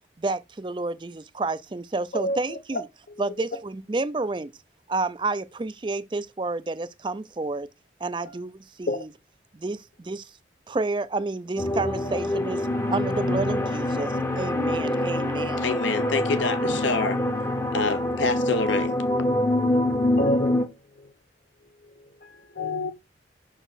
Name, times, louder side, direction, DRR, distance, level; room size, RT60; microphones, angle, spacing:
voice 1, 0.2-2.8 3.2-4.5 4.9-7.7 8.0-9.1 9.5-10.3 10.7-15.6, right 3 dB, 25° right, 0.4 m, -30 dB
voice 2, 2.1-2.8 3.1-3.3 3.5-3.6 8.2-8.4 8.9-9.0 20.2-21.1 21.8-22.9, left 1 dB, 50° left, 0.7 m, -30 dB
sound 1, 11.6-20.7, left 1 dB, 15° left, 0.7 m, -25 dB
voice 3, 15.6-17.2 17.7-19.0, left 4 dB, 85° left, 1.0 m, -26 dB
6.0 x 3.9 x 4.0 m
head